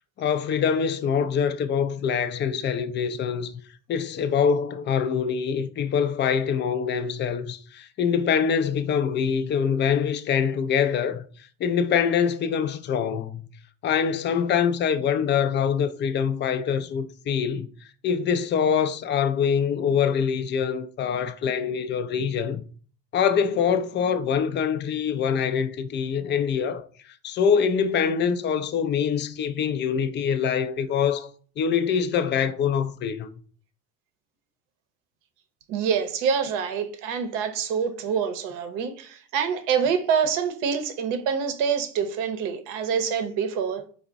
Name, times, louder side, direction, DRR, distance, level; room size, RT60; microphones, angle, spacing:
voice 1, 0.2-3.5 3.9-11.2 11.6-13.5 13.8-17.7 18.0-22.6 23.1-26.9 27.2-31.3 31.6-33.3, left 7 dB, 35° left, 0.4 m, -24 dB
voice 2, 35.7-43.9, right 7 dB, 65° right, 0.7 m, -26 dB
3.8 x 2.1 x 3.5 m
hypercardioid pair, 75°, 34 cm